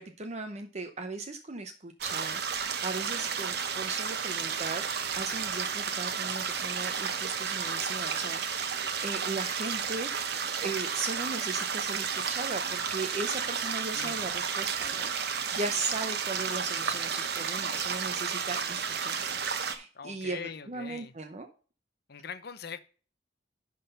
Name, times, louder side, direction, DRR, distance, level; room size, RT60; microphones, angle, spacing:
voice 1, 0.0-8.6 9.0-10.3 10.6-21.5, right 3 dB, 35° right, 0.7 m, -38 dB
sound 1, 2.0-19.8, right 6 dB, 55° right, 1.0 m, -32 dB
voice 2, 19.9-21.1 22.1-22.8, left 6 dB, 55° left, 0.7 m, -42 dB
11.0 x 3.9 x 5.4 m
head